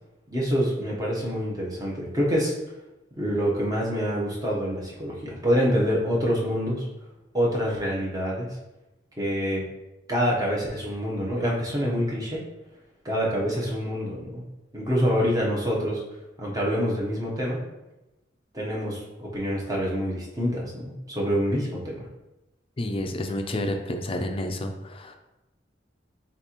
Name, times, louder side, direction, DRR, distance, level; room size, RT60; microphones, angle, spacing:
voice 1, 0.3-2.5 3.2-6.9 7.3-8.5 9.2-9.6 10.1-12.4 13.0-14.4 14.7-16.0 16.4-17.6 18.5-22.1, equal, 20° right, -4 dB, 1.0 m, -26 dB
voice 2, 22.8-25.2, left 1 dB, 30° left, 5 dB, 0.4 m, -30 dB
6.7 x 2.5 x 3.0 m, 0.99 s
head